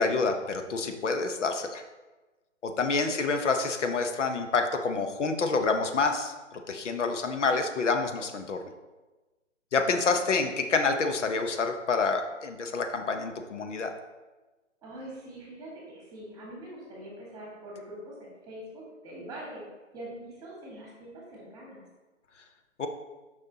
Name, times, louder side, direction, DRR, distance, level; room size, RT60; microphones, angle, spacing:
voice 1, 0.0-1.8 2.6-8.6 9.7-13.9 22.8-22.9, left 4 dB, 70° left, 6 dB, 0.9 m, -28 dB
voice 2, 2.9-3.3 10.1-10.2 14.8-19.6 19.9-21.8, right 1 dB, 10° right, -4 dB, 1.8 m, -44 dB
6.4 x 5.4 x 2.8 m, 1.2 s
figure-of-eight pair, 140°, 38 cm